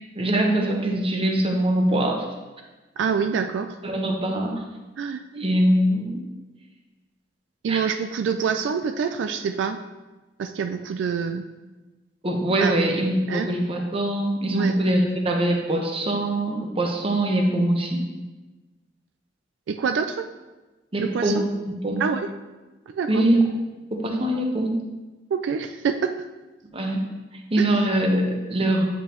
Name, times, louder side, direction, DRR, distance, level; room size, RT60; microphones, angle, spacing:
voice 1, 0.2-2.2 3.8-4.5 5.3-6.2 7.7-7.8 12.2-18.0 20.9-21.5 21.8-22.0 23.1-23.5 23.9-24.8 26.7-27.0 27.5-28.8, right 1 dB, 30° right, 2 dB, 0.9 m, -23 dB
voice 2, 3.0-3.8 5.0-5.2 7.6-9.8 10.4-11.5 12.6-12.7 13.3-13.5 14.5-14.7 19.7-20.3 21.0-21.5 22.0-22.3 22.9-23.2 25.3-26.1, right 6 dB, 80° right, 8 dB, 0.3 m, -26 dB
8.6 x 5.2 x 3.0 m, 1.2 s
head